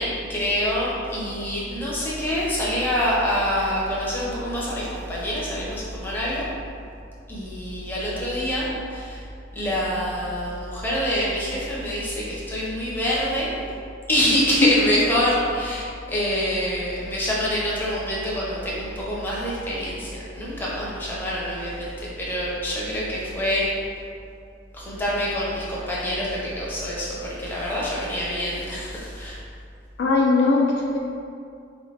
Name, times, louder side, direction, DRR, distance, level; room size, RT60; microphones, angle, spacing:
voice 1, 0.0-6.5 7.3-9.2 9.5-13.5 14.1-23.7 24.7-29.4, equal, 10° left, -6 dB, 0.6 m, -26 dB
voice 2, 30.0-31.0, left 3 dB, 55° left, -1 dB, 0.3 m, -19 dB
3.8 x 2.5 x 3.2 m, 2.4 s
head